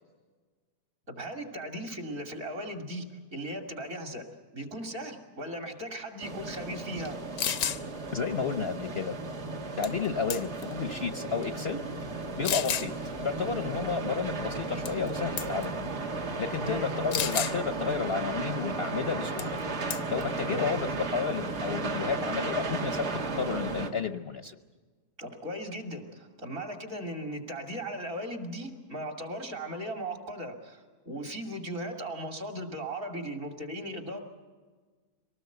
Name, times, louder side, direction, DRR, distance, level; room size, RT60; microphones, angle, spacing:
voice 1, 1.1-4.3 4.5-7.2 16.6-16.9 20.5-20.8 25.2-34.2, equal, 55° right, 4 dB, 3.1 m, -37 dB
sound 1, 6.2-23.9, right 3 dB, 75° right, 2.4 m, -35 dB
sound 2, 7.1-7.2 7.4-7.8 9.8-10.1 10.3-10.7 11.4-11.5 12.4-12.9 14.9-15.1 15.4-15.7 17.1-17.6 19.4-19.6 19.9-20.2, left 9 dB, 85° left, 1.4 m, -30 dB
voice 2, 8.1-9.2 9.8-11.9 12.4-12.9 13.2-15.9 16.4-19.6 20.1-24.6, left 5 dB, 50° left, 8 dB, 0.9 m, -32 dB
24.5 x 19.0 x 8.0 m, 1.5 s
omnidirectional pair, 1.7 m